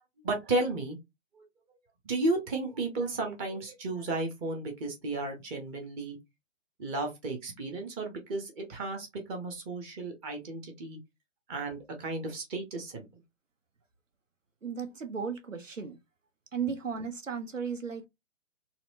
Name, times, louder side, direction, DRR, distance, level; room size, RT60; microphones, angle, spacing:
voice 1, 0.2-1.0 1.3-1.4 2.0-6.2 6.8-11.0 11.5-13.1, right 2 dB, 15° right, 0.6 m, -33 dB
voice 2, 14.6-16.0 16.5-18.1, right 6 dB, 85° right, 0.8 m, -35 dB
4.1 x 2.1 x 2.6 m
figure-of-eight pair, 125°, 37 cm